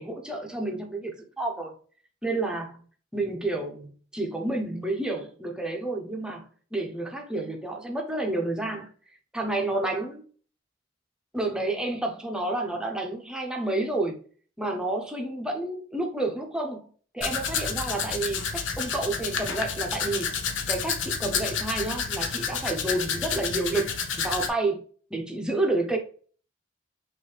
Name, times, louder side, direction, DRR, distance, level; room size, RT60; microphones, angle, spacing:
voice 1, 0.0-1.7 2.2-2.8 3.1-6.4 6.7-8.9 9.3-10.2 11.3-14.2 14.6-16.9 17.1-18.4 18.8-20.3 20.7-23.9 24.2-24.8 25.1-26.0, right 2 dB, 5° right, 0.9 m, -30 dB
Domestic sounds home sounds, 17.2-24.5, left 6 dB, 80° left, 0.7 m, -30 dB
6.0 x 2.7 x 3.3 m
head